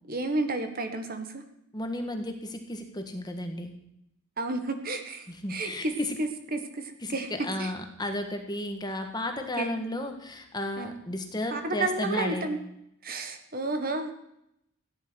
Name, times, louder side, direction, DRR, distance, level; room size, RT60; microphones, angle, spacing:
voice 1, 0.1-1.4 4.4-7.3 7.6-7.7 9.6-10.1 10.8-10.9 11.5-12.6 13.0-14.1, right 2 dB, 40° right, 7 dB, 1.5 m, -32 dB
voice 2, 1.7-3.7 5.3-6.1 7.0-12.5, left 1 dB, 20° left, 5 dB, 1.6 m, -33 dB
15.5 x 10.5 x 6.2 m, 0.80 s
head